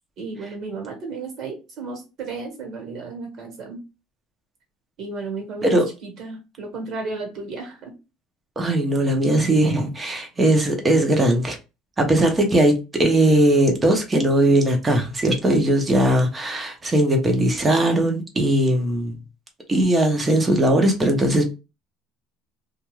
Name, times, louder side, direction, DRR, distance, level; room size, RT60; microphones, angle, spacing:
voice 1, 0.2-3.8 5.0-7.9 9.1-9.3, right 3 dB, 50° right, 1.3 m, -33 dB
voice 2, 8.6-11.6 12.0-19.2 19.7-21.4, right 1 dB, 15° right, 0.8 m, -19 dB
2.5 x 2.3 x 3.1 m
cardioid pair, 125°, 0 cm